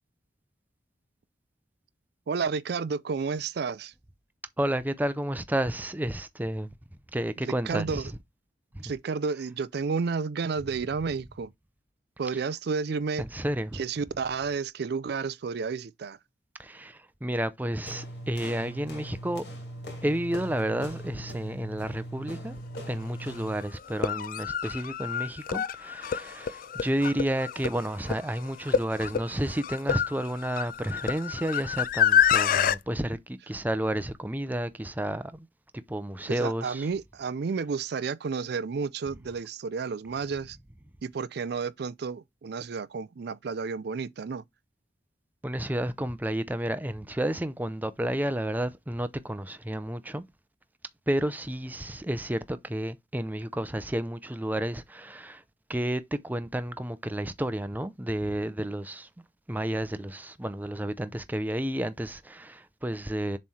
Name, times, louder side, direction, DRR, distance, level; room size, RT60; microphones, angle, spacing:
voice 1, 2.3-3.9 7.5-8.1 8.8-11.5 12.2-13.2 13.7-16.2 36.3-40.6 41.0-44.4, right 5 dB, 65° right, 0.4 m, -31 dB
voice 2, 4.6-6.7 7.1-8.0 8.7-8.8 13.2-13.8 16.6-19.4 20.0-22.6 22.9-35.5 35.7-36.9 45.4-50.2 51.1-55.4 55.7-59.1 59.5-63.4, right 1 dB, 10° right, 0.5 m, -31 dB
sound 1, 17.9-23.7, equal, 70° left, 2.8 m, -40 dB
sound 2, 22.7-22.8 23.9-32.8, left 8 dB, 50° left, 0.4 m, -27 dB
7.2 x 3.2 x 4.2 m
head